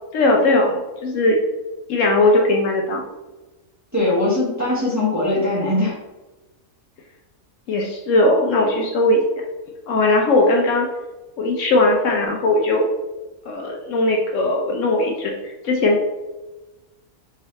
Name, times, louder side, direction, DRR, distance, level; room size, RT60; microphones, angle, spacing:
voice 1, 0.1-1.4 1.9-3.0 7.7-9.2 9.9-10.9 11.4-12.9 13.5-16.1, left 2 dB, 70° left, 0 dB, 0.9 m, -18 dB
voice 2, 3.9-5.9, left 2 dB, 15° right, -8 dB, 1.0 m, -20 dB
3.7 x 2.9 x 3.1 m, 1.1 s
omnidirectional pair, 1.5 m